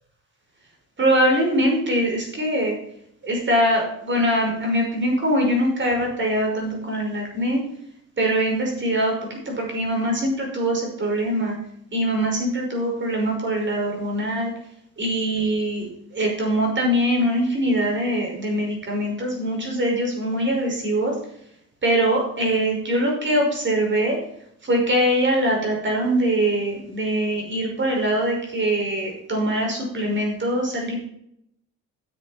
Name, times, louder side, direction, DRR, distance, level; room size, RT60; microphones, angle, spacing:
voice 1, 1.0-2.8 3.2-7.6 8.2-11.6 11.9-14.5 15.0-21.1 21.8-24.2 24.6-30.9, right 1 dB, 40° right, 0 dB, 5.8 m, -23 dB
10.5 x 7.6 x 6.0 m, 0.71 s
cardioid pair, 90°, 30 cm